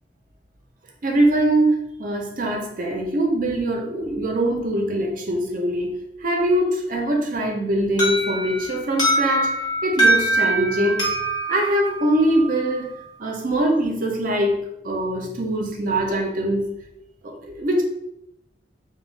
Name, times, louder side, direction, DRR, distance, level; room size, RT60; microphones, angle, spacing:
voice 1, 1.0-11.1 11.5-16.7 17.2-17.8, right 1 dB, 50° right, 0.6 m, -23 dB
Alarm, 8.0-12.8, right 2 dB, 25° left, 0.8 m, -23 dB
2.8 x 2.2 x 3.2 m
head